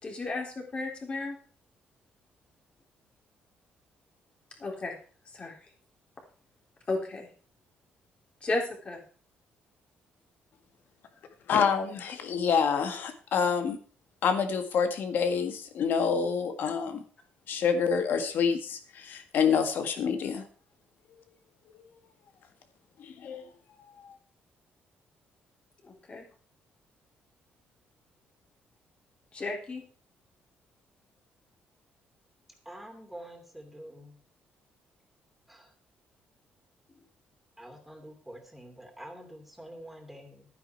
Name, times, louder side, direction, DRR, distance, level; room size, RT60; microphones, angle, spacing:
voice 1, 0.0-1.4 4.6-5.0 5.3-5.6 6.9-7.3 8.4-9.0 25.8-26.3 29.3-29.8, left 2 dB, 30° left, 1 dB, 3.6 m, -33 dB
voice 2, 11.5-13.8 14.2-17.0 17.5-20.4 23.0-23.4 24.0-24.1, left 6 dB, 65° left, 7 dB, 1.9 m, -27 dB
voice 3, 32.6-34.2 35.5-35.7 37.6-40.5, right 1 dB, 5° right, 4 dB, 2.8 m, -47 dB
12.0 x 9.8 x 4.6 m, 0.41 s
cardioid pair, 130°, 4 cm